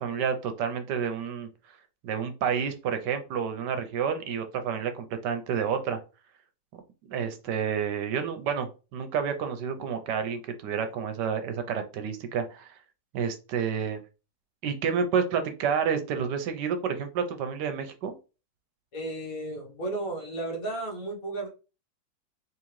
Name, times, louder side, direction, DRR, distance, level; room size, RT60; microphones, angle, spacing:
voice 1, 0.0-1.5 2.0-6.0 7.1-12.7 13.1-14.0 14.6-18.1, right 7 dB, 75° right, 8 dB, 1.2 m, -29 dB
voice 2, 7.1-7.5 18.9-21.5, right 2 dB, 55° left, 1 dB, 1.4 m, -34 dB
3.7 x 3.0 x 3.1 m, 0.32 s
omnidirectional pair, 1.9 m